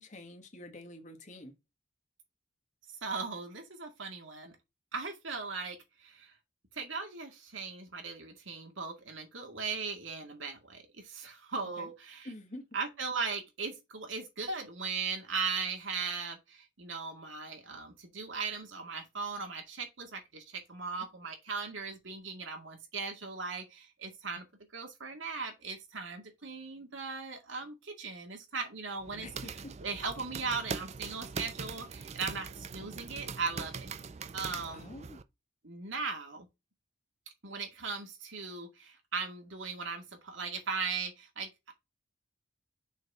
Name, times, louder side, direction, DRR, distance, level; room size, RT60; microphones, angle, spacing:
voice 1, 0.0-1.5 11.8-11.9 12.2-12.7 29.1-29.7 32.8-33.1 34.7-35.2, left 1 dB, 35° left, 1.6 m, -47 dB
voice 2, 3.0-4.5 4.9-6.3 6.7-12.3 12.7-24.5 24.7-29.3 29.8-33.9 34.3-34.9 35.6-36.5 37.4-41.7, right 4 dB, 70° right, 2.1 m, -38 dB
sound 1, 29.0-35.2, right 5 dB, 35° right, 0.4 m, -42 dB
6.4 x 4.3 x 4.1 m
head